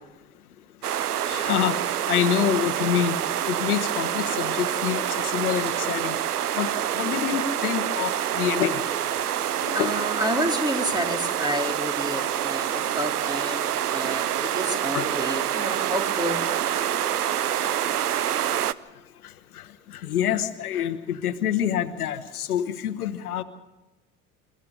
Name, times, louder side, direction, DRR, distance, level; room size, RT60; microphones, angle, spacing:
sound 1, 0.8-18.7, right 11 dB, 90° right, 0.6 m, -27 dB
voice 1, 1.3-3.2 3.5-6.2 6.5-8.8 9.6-10.0 14.9-15.1 16.8-17.0 17.5-17.7 19.2-23.4, left 10 dB, 75° left, 10 dB, 1.1 m, -27 dB
voice 2, 9.7-16.4, equal, 10° right, 3 dB, 3.6 m, -30 dB
28.5 x 14.5 x 6.6 m, 1.1 s
figure-of-eight pair, 70°, 44 cm